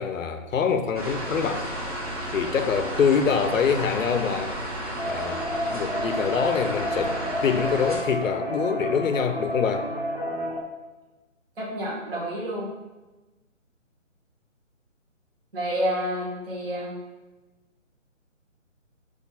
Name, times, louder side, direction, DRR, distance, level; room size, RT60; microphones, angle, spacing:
voice 1, 0.0-1.7 2.3-4.5 5.0-5.4 5.7-7.2 7.4-9.9, left 6 dB, 80° left, 8 dB, 0.6 m, -25 dB
sound 1, 0.9-8.0, right 1 dB, 30° right, 0.8 m, -32 dB
sound 2, 5.0-10.6, equal, 35° left, 0.5 m, -30 dB
voice 2, 11.6-12.7 15.5-17.0, equal, 45° right, -5 dB, 1.2 m, -29 dB
4.2 x 2.6 x 4.1 m, 1.2 s
hypercardioid pair, 165°, 39 cm